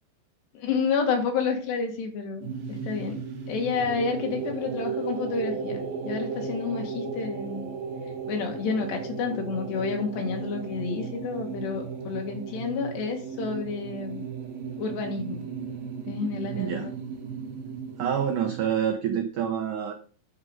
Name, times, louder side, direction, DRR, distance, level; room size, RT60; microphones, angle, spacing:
voice 1, 0.5-3.2 3.5-7.7 8.3-14.2 14.8-15.4 16.1-16.9, left 5 dB, 75° left, 3 dB, 4.0 m, -30 dB
sound 1, 2.4-18.7, right 5 dB, 65° right, 3.2 m, -35 dB
voice 2, 16.5-16.9 18.0-19.9, right 8 dB, 90° right, 5 dB, 1.7 m, -27 dB
9.7 x 6.7 x 5.4 m, 0.41 s
omnidirectional pair, 5.0 m